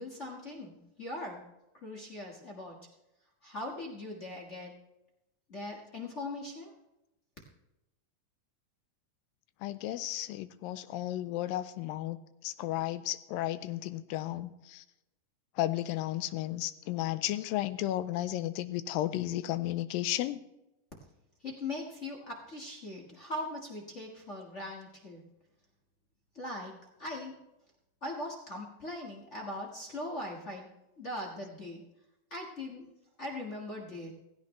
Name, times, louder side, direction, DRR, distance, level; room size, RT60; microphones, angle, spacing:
voice 1, 0.0-1.4 1.8-2.8 3.4-4.7 5.5-6.7 21.4-25.2 26.3-27.4 28.0-30.7 31.0-31.8 32.3-32.9 33.2-34.1, left 1 dB, 45° left, -1 dB, 0.9 m, -40 dB
voice 2, 9.6-12.2 12.4-14.8 15.6-20.4, left 14 dB, 90° left, 14 dB, 2.4 m, -33 dB
16.5 x 16.0 x 3.2 m, 0.93 s
omnidirectional pair, 4.0 m